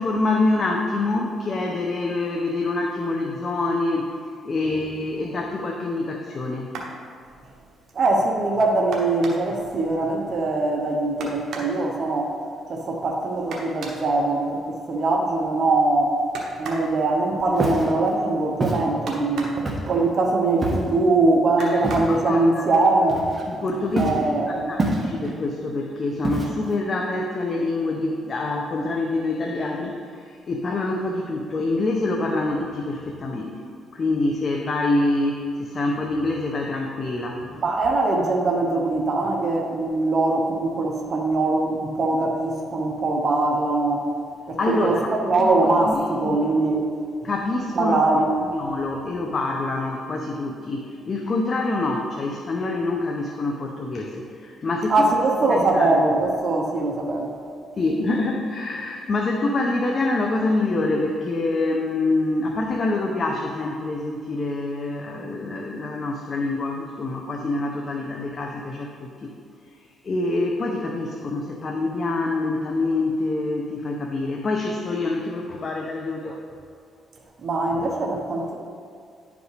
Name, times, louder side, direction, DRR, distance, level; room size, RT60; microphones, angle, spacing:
voice 1, 0.0-4.1 4.4-6.7 21.6-21.8 22.1-22.7 23.5-24.2 24.5-33.5 33.9-37.4 44.6-45.1 45.4-46.4 47.2-48.0 48.4-55.1 55.5-56.0 57.8-69.3 70.0-76.4, left 2 dB, 40° left, 0 dB, 0.7 m, -26 dB
sound 1, 6.6-7.0 8.9-9.6 11.2-11.8 13.5-14.1 16.3-16.9 19.1-19.7 21.6-22.2 23.3-23.4 23.8-24.1, right 3 dB, 70° right, 1.1 m, -36 dB
voice 2, 7.9-12.4 12.7-16.2 16.6-23.2 24.0-24.7 37.6-44.0 44.5-46.9 47.7-48.3 54.9-57.3 77.4-78.6, right 2 dB, 50° right, 0 dB, 0.9 m, -22 dB
Walk footsteps, 17.5-17.9 18.6-18.8 19.7-20.0 20.6-21.0 21.8-22.2 23.1-23.6 24.0-24.3 24.8-25.3 26.2-26.7, right 2 dB, 30° right, 1.2 m, -26 dB
10.5 x 5.0 x 3.3 m, 2.3 s
cardioid pair, 90°, 0 cm